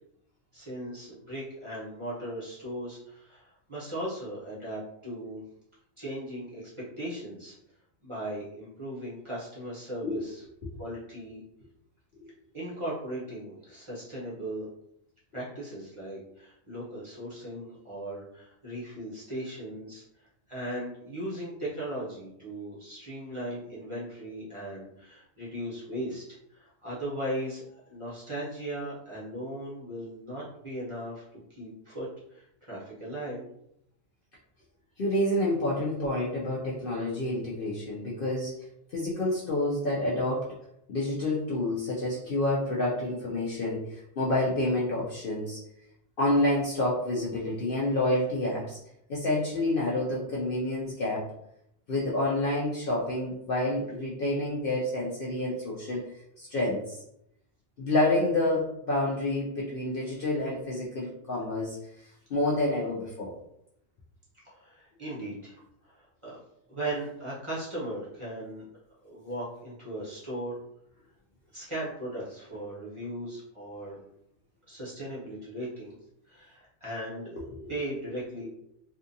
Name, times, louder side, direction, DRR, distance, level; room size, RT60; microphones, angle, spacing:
voice 1, 0.5-5.4 6.0-6.7 7.0-7.5 8.0-10.4 10.8-11.4 12.5-14.7 15.3-20.0 20.5-31.2 31.5-33.4 64.4-66.4 66.7-68.6 69.0-70.6 71.5-74.0 74.7-76.0 76.3-77.3 77.7-78.5, right 1 dB, 30° right, -8 dB, 0.8 m, -38 dB
voice 2, 35.0-38.5 38.9-40.5 40.9-45.6 46.2-48.8 49.1-51.3 51.9-56.0 56.4-57.0 57.8-61.8 62.3-63.3 77.5-77.7 78.4-78.5, left 1 dB, 60° left, -5 dB, 0.6 m, -28 dB
2.6 x 2.4 x 2.6 m, 0.77 s
omnidirectional pair, 1.3 m